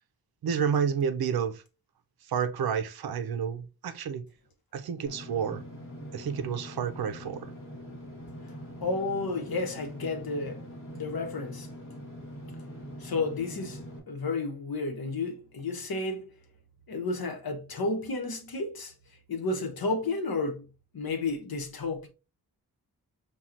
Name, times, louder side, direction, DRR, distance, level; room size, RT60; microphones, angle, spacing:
voice 1, 0.4-1.6 2.3-4.3 4.7-5.6 6.1-7.5, right 7 dB, 75° right, 0.5 m, -30 dB
Engine / Mechanisms, 5.1-14.0, equal, 35° left, 1.2 m, -43 dB
voice 2, 8.8-10.7 10.9-11.7 13.0-16.3 16.9-18.9 19.3-20.7 20.9-22.1, left 3 dB, 70° left, 0.9 m, -32 dB
5.7 x 2.3 x 2.5 m
wide cardioid pair, 140°, 37 cm